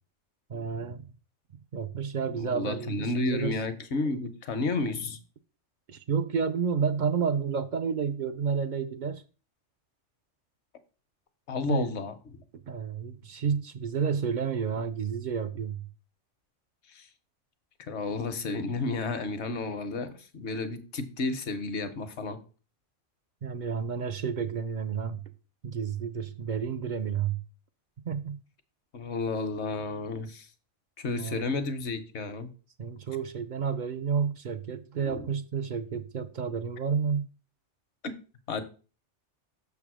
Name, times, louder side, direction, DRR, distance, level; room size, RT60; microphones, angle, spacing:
voice 1, 0.5-1.0 1.7-3.6 5.9-9.2 11.7-11.9 12.5-15.9 23.4-25.2 25.6-27.4 28.1-28.4 31.2-31.6 32.8-37.3, right 6 dB, 55° right, 0.5 m, -30 dB
voice 2, 2.3-5.2 11.5-12.1 16.9-17.1 17.9-22.4 28.9-30.5 31.0-32.5 35.0-35.3 38.5-38.6, left 3 dB, 70° left, 1.1 m, -32 dB
6.5 x 3.5 x 6.1 m
omnidirectional pair, 1.2 m